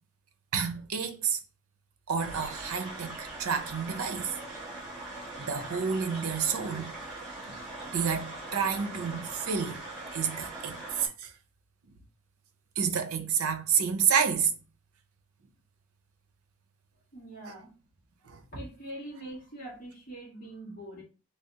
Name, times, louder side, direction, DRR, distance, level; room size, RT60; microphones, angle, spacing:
voice 1, 0.5-1.4 2.1-4.3 5.4-6.9 7.4-7.6 7.9-9.8 10.1-11.3 12.8-14.5 18.3-18.4, right 6 dB, 90° right, 0.6 m, -29 dB
sound 1, 2.2-11.1, right 2 dB, 5° right, 1.6 m, -41 dB
voice 2, 17.1-17.7 18.2-21.0, right 1 dB, 40° left, 1.9 m, -43 dB
3.4 x 3.3 x 2.8 m
head